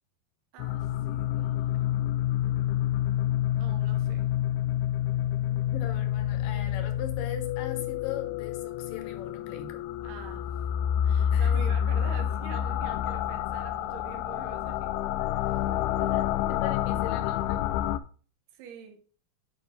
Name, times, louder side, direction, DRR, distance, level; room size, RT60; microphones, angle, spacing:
voice 1, 0.5-3.0 3.4-4.3 6.5-6.7 10.0-10.7 11.0-15.7 16.0-16.3 18.5-19.0, right 8 dB, 90° right, 3.2 m, -46 dB
sound 1, 0.6-18.0, left 11 dB, 90° left, 2.5 m, -28 dB
voice 2, 5.5-9.9 11.3-11.8 16.1-16.2 16.5-17.7, left 9 dB, 65° left, 2.5 m, -40 dB
9.5 x 5.0 x 3.6 m
omnidirectional pair, 4.4 m